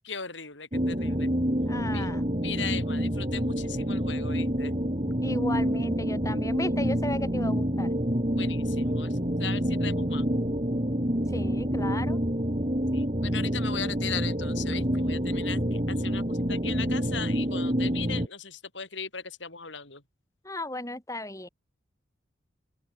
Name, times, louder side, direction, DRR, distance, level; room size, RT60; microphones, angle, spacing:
voice 1, 0.0-1.3 1.9-2.1 2.4-4.7 8.3-10.2 12.9-20.0, left 7 dB, 80° left, 7.8 m, -38 dB
sound 1, 0.7-18.3, equal, 35° right, 4.2 m, -27 dB
voice 2, 1.7-2.3 5.2-7.9 11.3-12.2 20.4-21.5, left 1 dB, 15° left, 7.1 m, -35 dB
open air
head